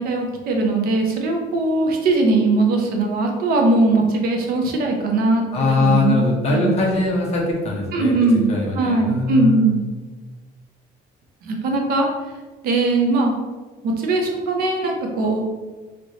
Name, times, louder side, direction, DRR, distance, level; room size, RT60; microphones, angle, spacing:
voice 1, 0.0-6.8 7.9-8.5 8.8-9.8 11.4-12.1 12.6-13.3 13.8-15.4, right 2 dB, 60° right, 2 dB, 0.6 m, -20 dB
voice 2, 5.5-8.1 8.5-9.8, left 3 dB, 40° left, -1 dB, 0.7 m, -21 dB
3.1 x 2.9 x 2.7 m, 1.3 s
cardioid pair, 180°, 17 cm